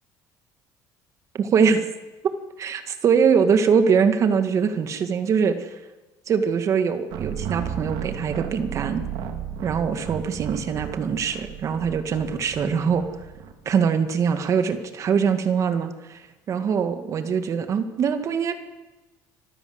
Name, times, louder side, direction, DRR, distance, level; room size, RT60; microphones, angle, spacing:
voice 1, 1.3-1.9 2.6-5.7 6.3-9.0 9.6-13.0 13.7-18.5, right 6 dB, 40° right, 9 dB, 2.0 m, -22 dB
sound 1, 7.1-13.5, right 9 dB, 70° right, 2.5 m, -34 dB
25.5 x 14.0 x 8.0 m, 1.1 s
cardioid pair, 135°, 8 cm